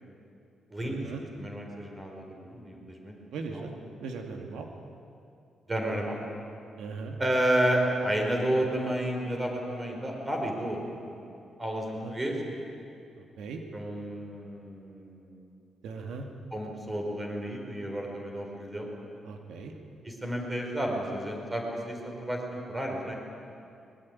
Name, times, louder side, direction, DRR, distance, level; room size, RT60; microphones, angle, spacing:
voice 1, 0.8-1.2 3.3-3.7 4.0-4.7 6.8-7.2 12.0-12.1 13.4-13.6 15.8-16.3 19.2-19.7, right 4 dB, 90° right, 3 dB, 2.4 m, -38 dB
voice 2, 1.3-3.1 3.5-3.7 5.7-6.2 7.2-11.3 11.6-12.4 13.7-15.5 16.5-18.9 20.0-23.2, right 1 dB, 20° right, 1 dB, 5.0 m, -31 dB
23.5 x 21.5 x 9.7 m, 2.7 s
cardioid pair, 130°, 0 cm